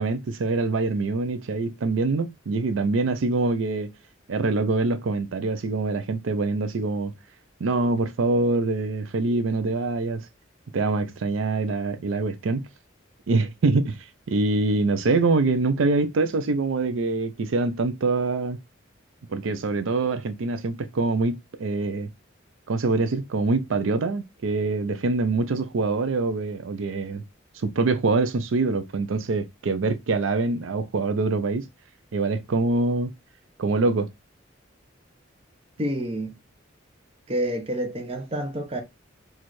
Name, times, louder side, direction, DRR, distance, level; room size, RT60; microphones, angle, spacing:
voice 1, 0.0-3.9 4.3-7.1 7.6-10.3 10.7-12.7 13.3-14.0 14.3-18.6 19.3-22.1 22.7-27.2 27.5-31.7 32.1-33.1 33.6-34.1, right 3 dB, 85° right, 0.5 m, -24 dB
voice 2, 35.8-36.4 37.3-38.8, right 1 dB, 30° right, 0.7 m, -28 dB
4.2 x 2.4 x 3.0 m
head